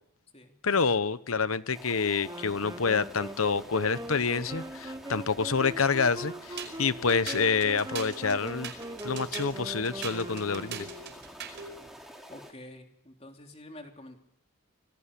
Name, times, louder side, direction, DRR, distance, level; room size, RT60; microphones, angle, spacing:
voice 1, 0.6-8.7 9.0-10.9, left 5 dB, 85° left, 14 dB, 1.1 m, -27 dB
sound 1, 1.7-12.5, equal, ahead, 3.8 m, -48 dB
Wind instrument woodwind instrument, 2.2-11.2, right 1 dB, 20° right, 1.2 m, -41 dB
sound 2, 6.6-11.7, right 7 dB, 55° right, 5.2 m, -41 dB
voice 2, 12.3-14.2, left 1 dB, 30° left, 3 dB, 3.5 m, -48 dB
27.0 x 20.5 x 8.5 m, 0.74 s
head